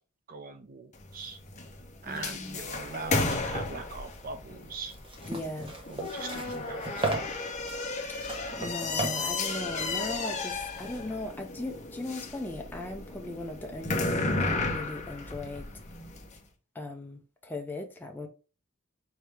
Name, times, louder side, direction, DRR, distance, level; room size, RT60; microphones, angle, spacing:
voice 1, 0.3-1.4 2.0-4.9 5.9-7.5, right 4 dB, 40° right, 0.6 m, -41 dB
sound 1, 0.9-16.3, left 3 dB, 35° left, 0.8 m, -34 dB
voice 2, 2.1-2.6 5.3-5.7 8.3-15.7 16.7-18.3, left 2 dB, 10° left, 0.5 m, -38 dB
sound 2, 4.7-10.8, right 2 dB, 25° right, 0.9 m, -37 dB
4.8 x 2.8 x 3.3 m
head